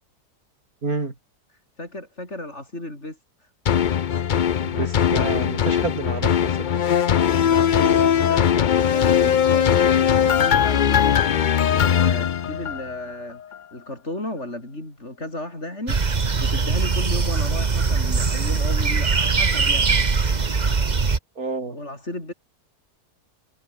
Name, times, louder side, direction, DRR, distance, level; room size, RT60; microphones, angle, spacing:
voice 1, 0.8-1.1 4.6-6.8 21.4-21.8, right 3 dB, 65° right, 4.1 m, -29 dB
voice 2, 1.5-3.5 7.4-11.2 11.7-13.4 13.7-16.0 16.4-20.0 21.7-22.3, left 1 dB, 45° left, 7.9 m, -34 dB
sound 1, 3.7-13.0 13.5-13.6, left 8 dB, 80° left, 0.4 m, -20 dB
sound 2, 15.9-21.2, right 4 dB, 30° right, 1.2 m, -21 dB
omnidirectional pair, 1.7 m